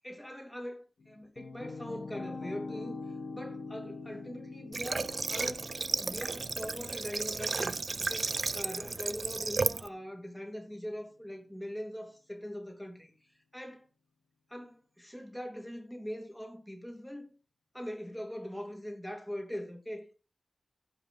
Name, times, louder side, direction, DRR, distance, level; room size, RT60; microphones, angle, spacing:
voice 1, 0.0-3.0 3.3-5.7 6.0-13.1 13.5-13.9 14.5-17.3 17.7-20.1, equal, 5° left, 2.8 m, -42 dB
sound 1, 1.0-10.1, left 3 dB, 80° left, 1.3 m, -45 dB
Water / Water tap faucet, 4.7-9.9, right 4 dB, 55° right, 0.4 m, -33 dB
16.0 x 5.6 x 4.0 m
wide cardioid pair, 100°, 0 cm